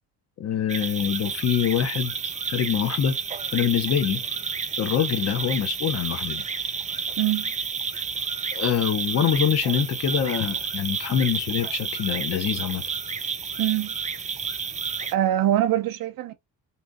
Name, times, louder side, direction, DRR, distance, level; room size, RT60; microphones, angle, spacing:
voice 1, 0.4-2.1 2.5-3.2 3.5-4.2 4.8-6.4 7.9-8.0 8.5-12.8, left 8 dB, 40° left, 0.5 m, -25 dB
sound 1, 0.7-15.1, right 5 dB, 20° right, 0.4 m, -30 dB
voice 2, 7.2-7.5 13.6-13.9 15.1-16.3, right 13 dB, 60° right, 0.7 m, -23 dB
2.8 x 2.6 x 3.5 m
cardioid pair, 125°, 38 cm